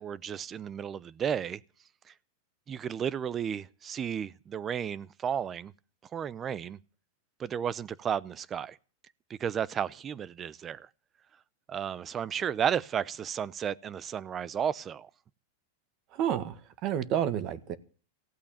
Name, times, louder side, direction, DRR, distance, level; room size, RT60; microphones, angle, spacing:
voice 1, 0.0-1.6 2.7-5.7 6.1-6.8 7.4-8.8 9.3-10.9 11.7-15.1, right 8 dB, 25° right, 0.7 m, -33 dB
voice 2, 16.1-16.6 16.8-17.8, right 10 dB, 45° right, 1.7 m, -29 dB
16.0 x 8.5 x 8.7 m
hypercardioid pair, 125°, 0 cm